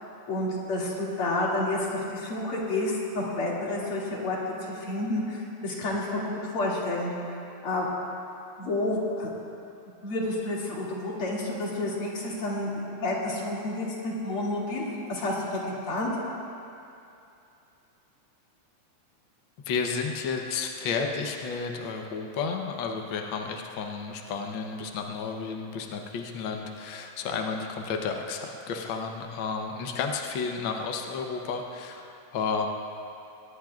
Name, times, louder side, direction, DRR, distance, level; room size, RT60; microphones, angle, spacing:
voice 1, 0.3-7.9 8.6-9.3 10.0-16.1, left 2 dB, 45° left, -5 dB, 3.1 m, -30 dB
voice 2, 19.7-32.7, left 5 dB, 80° left, 2 dB, 1.1 m, -32 dB
21.5 x 19.5 x 2.4 m, 2.7 s
omnidirectional pair, 3.4 m